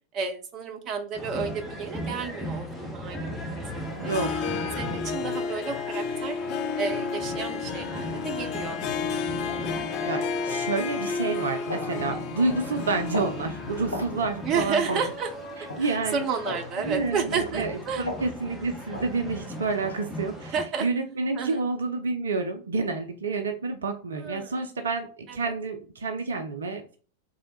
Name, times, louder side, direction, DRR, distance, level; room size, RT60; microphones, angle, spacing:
voice 1, 0.1-4.3 4.7-6.4 6.8-9.1 9.4-9.5 14.4-15.3 15.8-18.1 20.5-20.9 21.3-21.6 24.2-24.6 25.3-25.4, right 5 dB, 35° right, 5 dB, 0.7 m, -31 dB
sound 1, 1.1-20.6, left 1 dB, 5° left, 1.0 m, -38 dB
Harp, 4.0-15.9, left 5 dB, 40° left, 0.5 m, -32 dB
voice 2, 4.0-4.5 10.1-15.0 15.8-16.2 16.8-20.5 20.8-27.0, right 3 dB, 70° right, 5 dB, 0.5 m, -29 dB
sound 2, 11.0-11.1 11.7-11.9 12.5-12.7 13.1-13.4 13.9-14.1 14.9-15.1 15.7-15.9 16.4-16.7 17.3-17.5 18.1-18.3 18.9-19.1 19.8-20.0, left 1 dB, 80° left, 0.8 m, -35 dB
3.4 x 2.7 x 4.1 m, 0.39 s
figure-of-eight pair, 90°, 0 cm